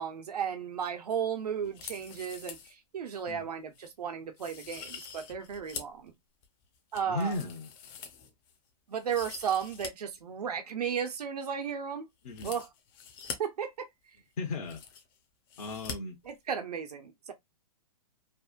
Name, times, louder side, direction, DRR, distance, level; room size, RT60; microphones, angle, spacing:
voice 1, 0.0-6.1 6.9-7.3 8.9-12.1 12.4-12.7 13.4-13.9 16.3-17.3, right 7 dB, 80° right, 0.9 m, -34 dB
sound 1, 1.6-2.7 3.1-3.2 3.7-3.9 4.4-6.0 6.4-8.5 8.9-9.9 10.2-10.3 12.3-13.4 14.2-14.3 14.4-15.2 15.5-15.9 16.2-16.3, left 7 dB, 35° left, 0.7 m, -44 dB
voice 2, 7.1-7.7 12.2-12.5 14.4-14.8 15.6-16.2, left 2 dB, 65° left, 1.1 m, -35 dB
3.3 x 2.1 x 2.4 m
hypercardioid pair, 140°, 20 cm